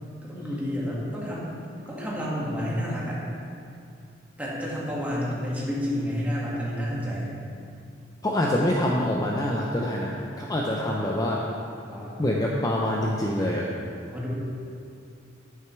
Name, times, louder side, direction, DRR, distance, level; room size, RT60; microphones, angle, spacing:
voice 1, 0.2-1.5 1.9-3.2 4.4-7.3 11.9-12.2 14.1-14.3, equal, 10° right, -7 dB, 1.9 m, -30 dB
voice 2, 8.2-11.4 12.2-13.7, left 1 dB, 20° left, -2 dB, 0.6 m, -25 dB
9.2 x 9.1 x 3.3 m, 2.5 s
head